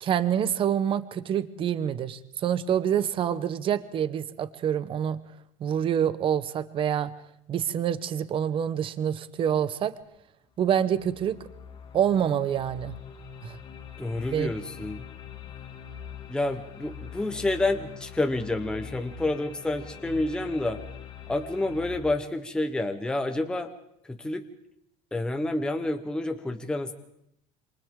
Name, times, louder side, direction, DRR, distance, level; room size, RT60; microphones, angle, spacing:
voice 1, 0.0-5.2 5.6-7.1 7.5-9.9 10.6-11.4 11.9-13.0 13.4-13.6 14.3-14.5, right 9 dB, 30° right, 14 dB, 0.8 m, -26 dB
sound 1, 10.0-10.1 10.6-22.0, left 7 dB, 30° left, 1.6 m, -43 dB
voice 2, 14.0-15.0 16.3-20.8 21.3-23.7 24.0-24.5 25.1-26.9, left 2 dB, 5° left, 6 dB, 0.9 m, -29 dB
27.5 x 27.0 x 3.7 m, 0.76 s
cardioid pair, 165°, 17 cm